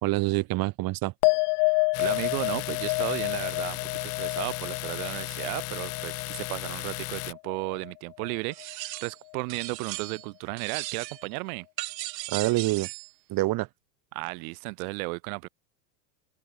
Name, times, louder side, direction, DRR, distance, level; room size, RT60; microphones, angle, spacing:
voice 1, 0.0-1.1 12.3-12.9 13.3-13.7, right 19 dB, 45° right, 1.7 m, -26 dB
sound 1, 1.2-7.9 8.2-8.8, left 28 dB, 50° left, 2.3 m, -29 dB
Domestic sounds home sounds, 1.9-7.3, left 21 dB, 30° left, 0.5 m, -36 dB
voice 2, 2.0-11.7 14.1-15.5, right 30 dB, 60° right, 1.3 m, -34 dB
sound 2, 8.5-9.2 9.5-10.3 10.6-11.3 11.8-13.1, right 19 dB, 80° right, 0.9 m, -37 dB
open air
supercardioid pair, 120°, 50 cm